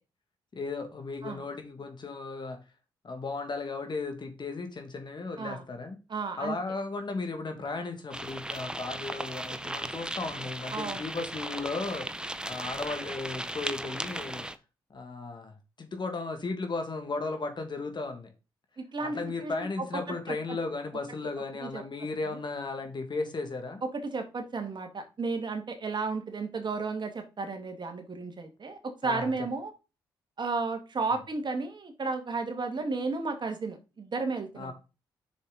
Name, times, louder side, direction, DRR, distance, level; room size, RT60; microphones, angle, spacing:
voice 1, 0.5-2.6 3.0-6.0 6.4-14.5 14.9-18.3 19.0-23.8 29.0-29.3 34.6-34.7, left 3 dB, 45° left, 2.0 m, -35 dB
voice 2, 6.1-6.6 10.7-11.1 18.8-20.4 21.6-21.8 23.9-29.7 30.4-34.7, right 3 dB, 45° right, 1.9 m, -33 dB
sound 1, 8.1-14.6, right 1 dB, 10° right, 0.7 m, -37 dB
6.6 x 6.4 x 3.9 m
hypercardioid pair, 45°, 11 cm